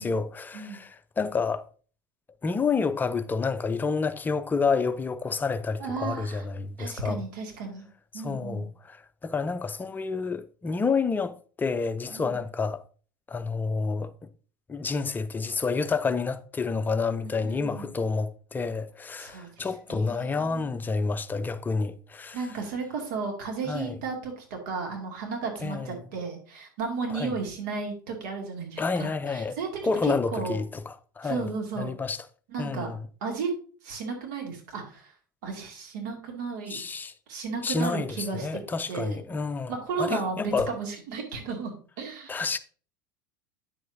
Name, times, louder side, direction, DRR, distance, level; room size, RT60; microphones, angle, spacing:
voice 1, 0.0-1.6 2.4-7.2 8.1-11.3 11.6-12.8 13.3-14.1 14.7-22.4 23.7-24.0 25.6-25.9 27.1-27.3 28.8-29.6 29.8-31.5 31.8-32.2 32.6-33.0 36.7-37.1 37.6-39.7 40.0-40.7 42.3-42.6, left 4 dB, 15° left, 0.6 m, -29 dB
voice 2, 5.8-6.4 6.8-7.8 8.1-8.7 12.1-12.4 17.2-17.9 19.2-20.8 22.3-30.6 31.2-31.9 32.5-32.9 33.2-33.5 33.8-35.1 35.4-36.8 37.3-38.6 38.9-39.2 39.7-42.4, right 4 dB, 60° right, 2.4 m, -34 dB
9.2 x 7.7 x 2.7 m
figure-of-eight pair, 80°, 11 cm